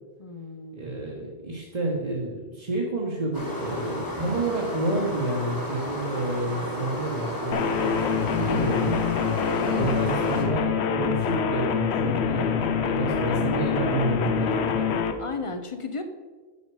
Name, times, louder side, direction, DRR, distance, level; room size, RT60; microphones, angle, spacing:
voice 1, 0.2-0.8 9.7-10.0 15.2-16.0, left 4 dB, 40° left, 8 dB, 0.5 m, -34 dB
voice 2, 0.7-9.1 9.6-14.9, right 2 dB, 40° right, -3 dB, 1.2 m, -29 dB
sound 1, 3.3-10.4, equal, 20° left, 1.4 m, -32 dB
sound 2, 7.5-15.1, left 7 dB, 80° left, 0.9 m, -25 dB
8.3 x 5.5 x 4.8 m, 1.4 s
omnidirectional pair, 1.1 m